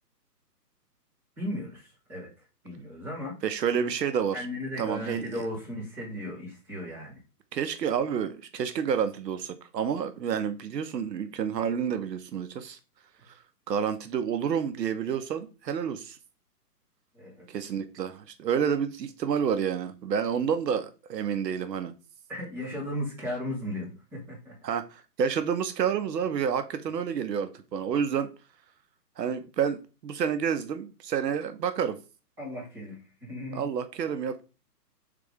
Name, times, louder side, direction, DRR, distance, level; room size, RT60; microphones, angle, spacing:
voice 1, 1.4-3.4 4.3-7.2 17.1-17.5 22.3-24.6 32.4-33.7, left 1 dB, 5° right, 1.2 m, -36 dB
voice 2, 3.4-4.4 4.8-5.2 7.5-12.8 13.3-13.4 13.7-16.2 17.5-21.9 24.6-28.3 29.2-32.0 33.5-34.4, right 7 dB, 80° right, 0.7 m, -29 dB
3.7 x 3.4 x 3.3 m
hypercardioid pair, 175°, 49 cm